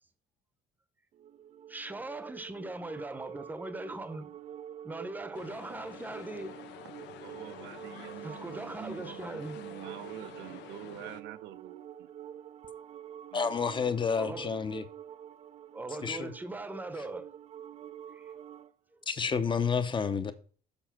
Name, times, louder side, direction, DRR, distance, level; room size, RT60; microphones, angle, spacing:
sound 1, 1.1-18.7, right 10 dB, 40° right, 0.4 m, -47 dB
voice 1, 1.7-4.3 4.8-6.5 8.2-9.6 14.2-14.5 15.7-17.3 18.1-18.3, right 2 dB, 10° right, 0.8 m, -40 dB
sound 2, 5.3-11.2, left 11 dB, 75° left, 0.9 m, -49 dB
voice 2, 7.2-12.1 13.3-13.6, right 13 dB, 80° right, 0.7 m, -46 dB
voice 3, 13.3-14.8 16.0-16.3 17.0-17.1 19.1-20.3, left 6 dB, 25° left, 0.8 m, -30 dB
7.1 x 5.2 x 5.9 m
cardioid pair, 135°, 18 cm